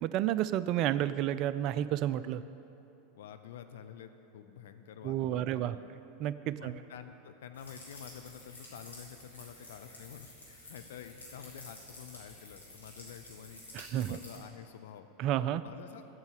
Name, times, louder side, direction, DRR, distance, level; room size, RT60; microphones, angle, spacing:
voice 1, 0.0-2.4 5.0-5.8 6.2-6.7 13.7-14.2 15.2-15.6, right 12 dB, 45° right, 14 dB, 0.4 m, -31 dB
voice 2, 3.1-5.9 6.6-13.6 14.1-15.1 15.6-16.1, left 8 dB, 60° left, 8 dB, 0.6 m, -49 dB
sound 1, 7.5-14.4, left 1 dB, 80° left, 2.5 m, -51 dB
8.2 x 7.5 x 8.5 m, 3.0 s
figure-of-eight pair, 80°, 0 cm